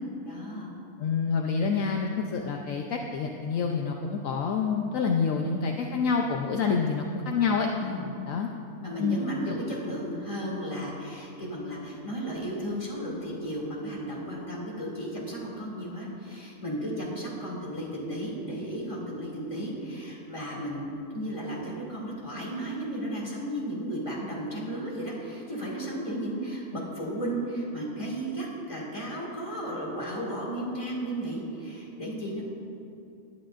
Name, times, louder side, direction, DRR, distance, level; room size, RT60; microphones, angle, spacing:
voice 1, 0.2-0.7 7.8-8.1 8.8-32.4, right 1 dB, 20° left, -5 dB, 2.6 m, -34 dB
voice 2, 1.0-7.7 8.3-8.5 9.0-9.2 9.5-9.6, left 5 dB, 70° left, 1 dB, 1.1 m, -27 dB
20.0 x 11.0 x 2.6 m, 2.8 s
omnidirectional pair, 1.5 m